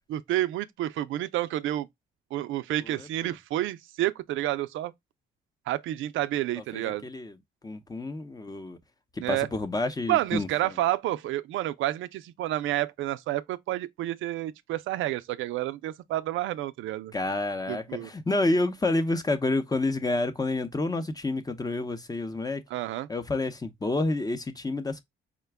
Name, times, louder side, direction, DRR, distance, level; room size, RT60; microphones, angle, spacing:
voice 1, 0.1-1.9 2.3-4.9 5.7-7.0 9.2-9.5 10.1-17.1 17.7-18.1 22.7-23.1, right 14 dB, 80° right, 0.4 m, -29 dB
voice 2, 2.8-3.3 6.6-7.4 7.6-8.8 9.1-10.8 17.1-22.6 23.1-25.0, left 2 dB, 20° left, 0.7 m, -29 dB
4.9 x 2.2 x 3.3 m
cardioid pair, 90°, 20 cm